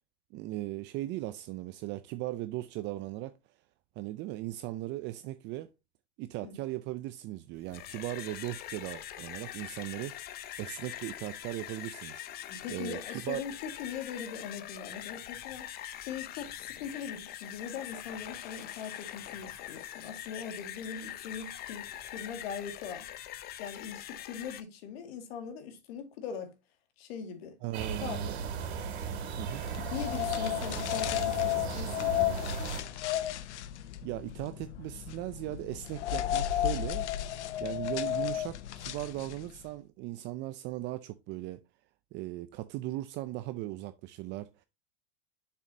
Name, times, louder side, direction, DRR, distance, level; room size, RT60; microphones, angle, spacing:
voice 1, 0.3-3.4 4.0-5.7 6.2-12.2 12.7-13.4 27.6-28.4 29.4-29.7 34.0-37.1 37.6-41.6 42.1-44.6, right 16 dB, 35° right, 0.4 m, -38 dB
sound 1, 7.6-24.6, left 12 dB, 30° left, 0.6 m, -43 dB
voice 2, 12.5-15.7 16.0-23.1 23.6-26.5 27.0-27.6 28.0-28.2 29.9-32.4, left 7 dB, 65° left, 2.2 m, -41 dB
sound 2, 27.7-32.8, right 5 dB, 65° right, 2.7 m, -36 dB
sound 3, 29.6-39.6, left 13 dB, 80° left, 0.8 m, -33 dB
7.0 x 6.7 x 2.7 m
supercardioid pair, 130°, 34 cm